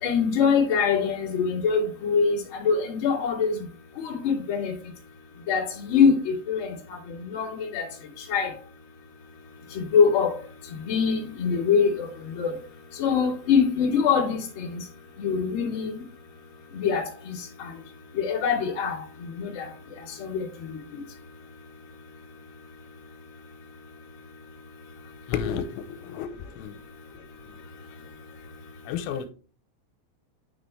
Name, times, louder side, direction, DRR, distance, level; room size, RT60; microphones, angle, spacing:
voice 1, 0.0-3.6 4.0-4.7 5.5-6.7 7.2-7.8 8.3-8.5 9.7-10.3 10.8-12.5 13.0-14.8 15.2-16.0 16.7-17.3 17.6-17.7 18.1-19.0 19.4-19.7 20.2-20.4, left 6 dB, 35° left, 2.6 m, -24 dB
voice 2, 25.3-26.7 28.9-29.2, left 8 dB, 90° left, 3.3 m, -31 dB
9.5 x 6.2 x 3.3 m
omnidirectional pair, 5.8 m